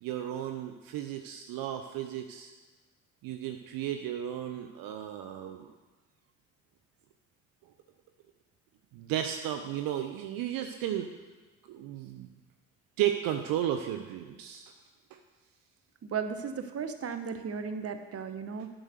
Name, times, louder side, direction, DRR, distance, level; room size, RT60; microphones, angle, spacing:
voice 1, 0.0-2.5 3.2-5.7 8.9-11.1 11.7-12.3 13.0-14.7 15.1-15.2, right 11 dB, 60° right, 6 dB, 0.7 m, -34 dB
voice 2, 16.0-18.7, right 6 dB, 35° right, 8 dB, 1.0 m, -35 dB
9.9 x 6.3 x 6.6 m, 1.2 s
figure-of-eight pair, 45°, 39 cm